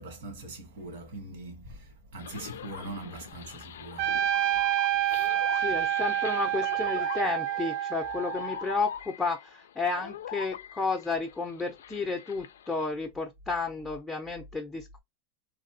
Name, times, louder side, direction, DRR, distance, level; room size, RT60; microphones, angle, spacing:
voice 1, 0.0-4.6 5.1-5.3, right 2 dB, 70° right, 1.5 m, -42 dB
sound 1, 2.2-12.9, left 9 dB, 90° left, 0.4 m, -43 dB
Trumpet, 4.0-8.7, right 12 dB, 55° right, 0.4 m, -28 dB
voice 2, 5.5-15.0, left 4 dB, 10° left, 0.6 m, -32 dB
3.3 x 2.3 x 2.7 m
supercardioid pair, 120°, 0 cm